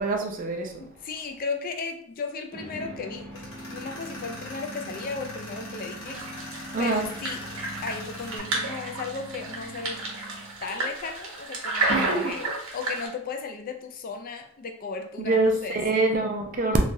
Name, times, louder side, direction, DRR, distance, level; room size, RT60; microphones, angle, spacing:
voice 1, 0.0-0.8 6.7-7.1 11.9-12.3 15.3-16.8, right 2 dB, 40° right, 0.4 m, -25 dB
voice 2, 0.8-6.3 6.8-7.4 7.8-10.0 10.6-16.1, left 4 dB, 45° left, 0.3 m, -35 dB
sound 1, 2.5-10.8, right 1 dB, 5° left, 0.7 m, -43 dB
Tools, 3.3-8.4, left 1 dB, 65° left, 1.0 m, -42 dB
sound 2, 6.1-13.1, right 2 dB, 80° right, 0.8 m, -31 dB
3.1 x 2.3 x 2.6 m
head